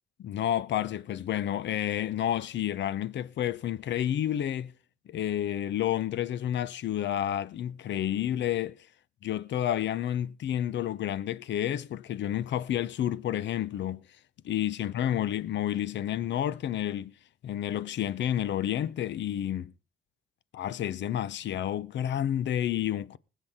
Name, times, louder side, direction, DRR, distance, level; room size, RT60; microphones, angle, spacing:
voice 1, 0.2-4.7 5.1-8.9 9.2-14.0 14.4-17.1 17.4-19.7 20.5-23.2, left 11 dB, 65° left, 0.8 m, -30 dB
20.5 x 8.3 x 3.7 m
cardioid pair, 90°, 20 cm